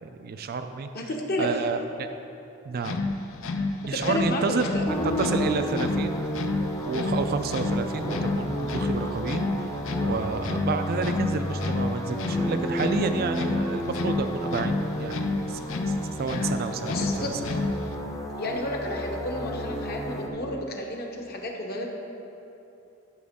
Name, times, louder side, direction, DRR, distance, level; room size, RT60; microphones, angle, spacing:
voice 1, 0.0-0.9 1.4-2.1 2.7-3.0 3.8-4.6 5.0-6.2 6.8-9.4 10.0-15.6 15.9-17.6, right 4 dB, 50° right, 8 dB, 0.4 m, -30 dB
voice 2, 0.9-1.5 3.9-4.8 16.3-16.5 16.9-17.3 18.4-21.9, left 1 dB, 50° left, 1 dB, 1.0 m, -31 dB
sound 1, 2.8-18.0, left 3 dB, 80° left, 0.6 m, -30 dB
sound 2, 4.9-20.3, equal, 15° left, 0.7 m, -32 dB
12.5 x 6.1 x 3.6 m, 2.9 s
head